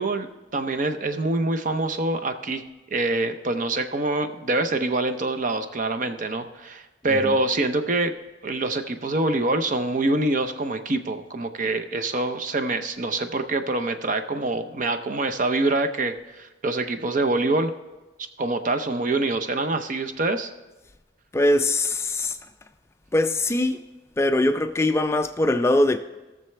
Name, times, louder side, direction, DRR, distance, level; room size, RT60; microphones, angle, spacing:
voice 1, 0.0-2.6 2.9-8.1 8.4-17.7 18.4-20.5, right 2 dB, 45° right, 0.6 m, -25 dB
voice 2, 21.3-22.4 23.1-23.8 24.2-26.0, left 1 dB, 15° left, 0.3 m, -22 dB
17.0 x 6.7 x 3.3 m
head